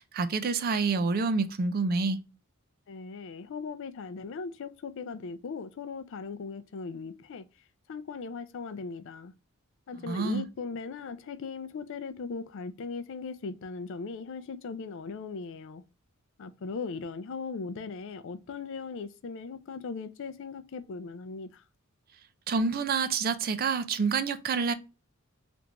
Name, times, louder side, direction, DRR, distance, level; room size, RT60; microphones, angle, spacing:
voice 1, 0.0-2.2 10.1-10.4 22.5-24.7, right 4 dB, 45° right, 0.4 m, -28 dB
voice 2, 2.9-7.5 7.9-9.3 9.9-15.8 16.4-21.6, left 4 dB, 60° left, 0.4 m, -38 dB
3.4 x 2.5 x 2.8 m
head